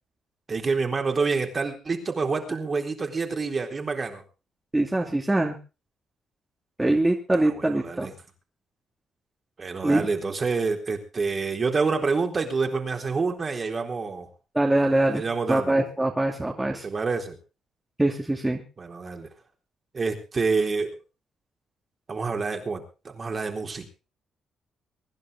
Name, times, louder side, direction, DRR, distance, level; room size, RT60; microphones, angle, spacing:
voice 1, 0.5-4.2 7.3-8.1 9.6-14.3 15.1-15.7 16.8-17.4 18.8-19.3 19.9-20.9 22.1-23.9, right 4 dB, 35° right, 3 dB, 3.8 m, -27 dB
voice 2, 4.7-5.6 6.8-8.1 9.8-10.1 14.5-16.9 18.0-18.6, right 1 dB, 15° right, 0 dB, 2.6 m, -23 dB
24.0 x 11.0 x 3.7 m, 0.32 s
cardioid pair, 90°, 0 cm